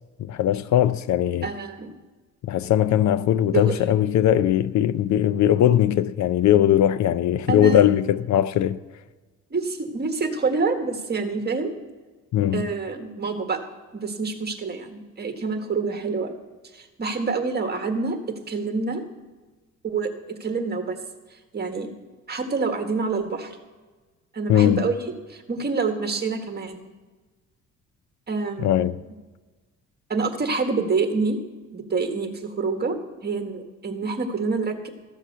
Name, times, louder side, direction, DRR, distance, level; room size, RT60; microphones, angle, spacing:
voice 1, 0.3-1.5 2.4-8.8 12.3-12.7 24.5-24.9 28.6-29.0, left 11 dB, 65° left, 0.5 m, -20 dB
voice 2, 1.4-1.9 3.5-3.7 7.5-7.9 9.5-11.7 12.5-13.6 13.9-16.4 16.7-18.2 18.5-19.0 19.8-20.1 20.4-21.0 21.3-21.9 22.3-23.6 24.3-26.8 28.3-29.1 30.1-31.4 31.7-34.9, right 4 dB, 35° right, 1.7 m, -27 dB
14.0 x 7.3 x 6.7 m
cardioid pair, 90°, 30 cm